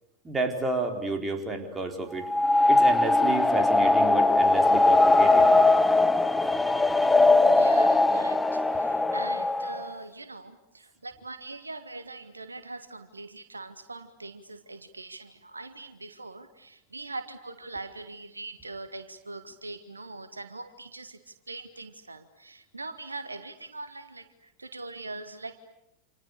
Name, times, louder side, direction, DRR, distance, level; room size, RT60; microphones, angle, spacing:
voice 1, 0.2-2.3 2.7-5.5 6.4-6.5, right 2 dB, 15° right, 4 dB, 4.2 m, -31 dB
sound 1, 2.2-9.9, left 2 dB, 5° left, 1.1 m, -20 dB
voice 2, 7.5-25.6, right 2 dB, 80° right, 10 dB, 1.6 m, -42 dB
29.0 x 28.0 x 6.7 m, 0.82 s
figure-of-eight pair, 90°, 0 cm